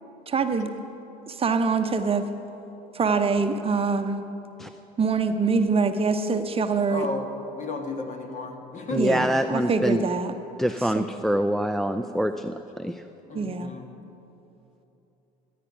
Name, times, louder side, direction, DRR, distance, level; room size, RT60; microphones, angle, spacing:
voice 1, 0.3-0.7 1.3-2.3 2.9-4.2 5.0-7.1 9.0-10.3 10.9-11.0 13.3-13.7, right 4 dB, 30° right, 7 dB, 0.8 m, -24 dB
voice 2, 6.9-7.3 7.5-9.1 10.9-11.0 13.3-13.9, left 3 dB, 40° left, 4 dB, 1.7 m, -33 dB
voice 3, 8.9-10.0 10.6-13.0, equal, ahead, 8 dB, 0.4 m, -25 dB
14.5 x 9.3 x 6.0 m, 3.0 s
hypercardioid pair, 75°, 19 cm